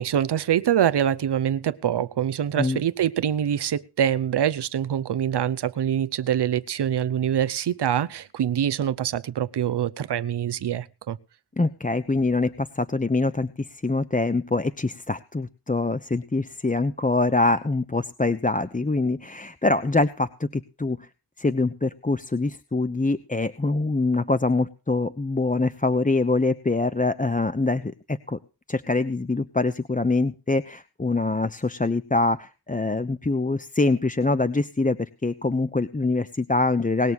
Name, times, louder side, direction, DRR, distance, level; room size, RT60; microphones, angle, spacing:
voice 1, 0.0-11.2, right 9 dB, 85° right, 15 dB, 0.9 m, -25 dB
voice 2, 11.6-21.1 21.4-28.4 28.7-37.1, left 3 dB, 20° left, 12 dB, 1.0 m, -24 dB
20.0 x 6.9 x 6.1 m, 0.34 s
cardioid pair, 50°, 39 cm